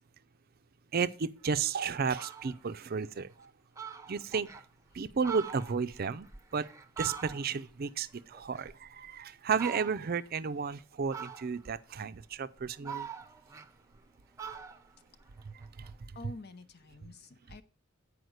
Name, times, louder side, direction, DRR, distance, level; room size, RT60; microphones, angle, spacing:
voice 1, 0.9-3.5 4.1-4.5 4.9-6.7 7.0-13.1 15.4-15.9, right 5 dB, 50° right, 0.5 m, -33 dB
Fowl, 1.6-1.7 2.0-2.6 3.1-3.2 3.4-3.5 3.8-4.7 5.1-7.7 8.1-9.1 9.5-10.2 11.1-11.8 12.3-14.1 14.4-16.0, right 7 dB, 15° right, 0.7 m, -44 dB
voice 2, 16.1-17.6, left 2 dB, 55° left, 0.8 m, -48 dB
9.4 x 4.9 x 6.4 m
head